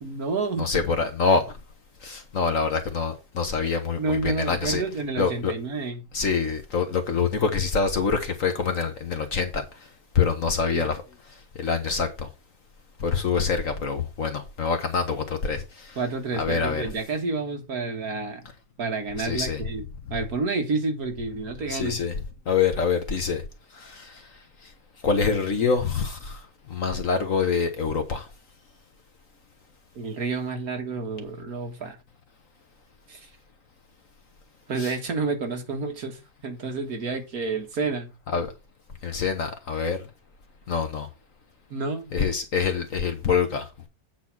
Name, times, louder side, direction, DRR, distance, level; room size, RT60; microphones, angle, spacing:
voice 1, 0.0-0.8 4.0-6.1 10.7-10.9 16.0-18.4 18.8-19.8 20.1-22.0 30.0-32.0 33.1-33.3 34.7-38.1 41.7-42.1, right 3 dB, 55° right, 1.8 m, -29 dB
voice 2, 0.6-1.6 2.0-4.8 5.2-5.5 6.1-9.9 10.1-11.0 11.3-12.3 13.0-16.0 16.4-16.9 19.2-19.6 21.7-22.1 22.5-23.4 23.7-24.7 25.0-28.3 34.8-34.9 38.3-38.5 39.0-40.1 40.7-41.1 42.1-43.9, left 5 dB, 50° left, 1.3 m, -26 dB
8.7 x 4.1 x 5.8 m
omnidirectional pair, 2.0 m